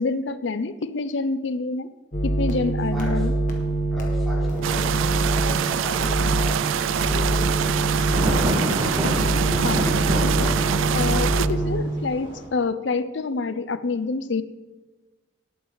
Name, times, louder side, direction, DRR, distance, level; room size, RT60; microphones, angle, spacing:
voice 1, 0.0-1.9 2.2-3.3 9.0-14.4, left 3 dB, 70° left, 14 dB, 0.6 m, -27 dB
sound 1, 2.1-11.8, right 2 dB, 40° left, 1.8 m, -24 dB
voice 2, 2.9-3.3 3.9-7.7 11.1-11.2, left 1 dB, ahead, -9 dB, 4.9 m, -36 dB
sound 2, 4.6-11.5, right 9 dB, 85° right, 0.4 m, -25 dB
Thunder, 6.0-12.4, equal, 25° right, 2.9 m, -29 dB
18.5 x 8.7 x 4.0 m, 1.2 s
head